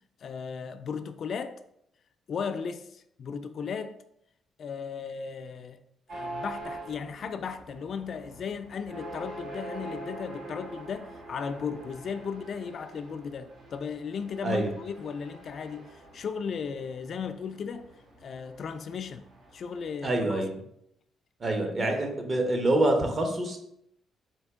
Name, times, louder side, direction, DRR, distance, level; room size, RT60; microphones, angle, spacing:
voice 1, 0.2-1.6 2.3-4.0 4.6-5.8 6.1-17.9 18.2-19.3 19.5-20.4 21.8-21.9, left 6 dB, 55° left, 0.3 m, -36 dB
sound 1, 6.1-20.0, right 2 dB, 70° right, 1.1 m, -44 dB
voice 2, 20.0-20.5 21.4-23.6, right 1 dB, 35° right, 0.9 m, -26 dB
4.4 x 2.8 x 3.5 m
cardioid pair, 90°, 0 cm